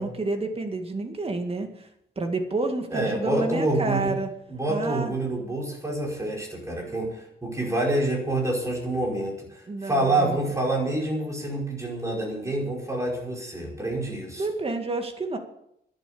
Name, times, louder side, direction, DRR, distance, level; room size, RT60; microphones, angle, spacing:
voice 1, 0.0-1.9 2.2-4.3 4.7-5.1 9.7-10.5 14.3-15.4, right 2 dB, 35° right, 5 dB, 2.0 m, -29 dB
voice 2, 2.9-4.2 4.5-14.5, right 2 dB, 15° right, 0 dB, 5.0 m, -27 dB
12.0 x 10.5 x 8.6 m, 0.76 s
wide cardioid pair, 130°, 18 cm